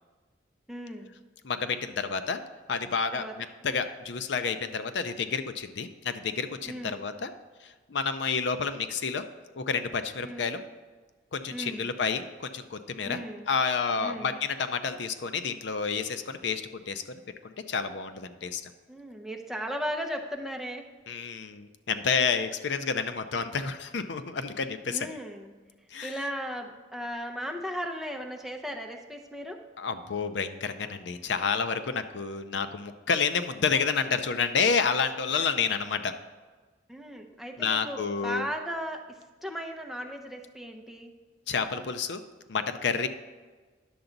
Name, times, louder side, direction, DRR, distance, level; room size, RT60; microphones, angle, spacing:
voice 1, 0.7-1.1 3.1-3.3 6.7-7.1 10.2-10.5 11.5-11.9 13.0-13.5 14.0-14.4 18.9-20.8 24.9-25.5 26.0-29.6 35.5-35.6 36.9-39.2 39.4-41.1, equal, ahead, 1 dB, 0.6 m, -36 dB
voice 2, 1.4-2.4 2.7-7.3 7.6-9.3 9.6-10.6 11.3-13.2 13.5-18.7 21.1-25.1 25.9-26.1 29.8-36.1 37.6-38.5 41.5-42.2 42.5-43.1, left 5 dB, 75° left, 10 dB, 0.5 m, -30 dB
10.5 x 6.9 x 3.9 m, 1.4 s
head